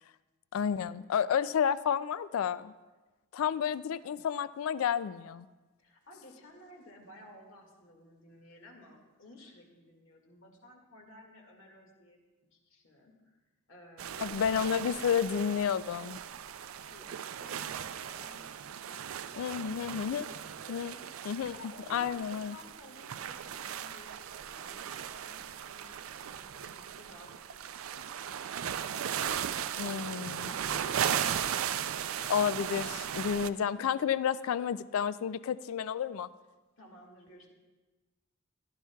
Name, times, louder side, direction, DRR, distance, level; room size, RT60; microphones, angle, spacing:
voice 1, 0.5-2.7 3.3-5.5 14.2-16.2 19.4-20.3 20.7-20.9 21.3-21.5 21.9-22.6 29.8-30.5 32.3-36.3, left 8 dB, 85° left, 16 dB, 0.3 m, -31 dB
voice 2, 5.8-12.2 12.5-13.4 13.7-15.7 16.8-17.7 18.0-25.4 25.7-28.6 29.1-29.5 30.3-32.5 34.4-34.7 36.8-37.5, left 1 dB, 65° left, 1 dB, 1.9 m, -55 dB
sound 1, 14.0-33.5, right 9 dB, 80° right, 0.4 m, -37 dB
16.0 x 11.5 x 2.3 m, 1.2 s
head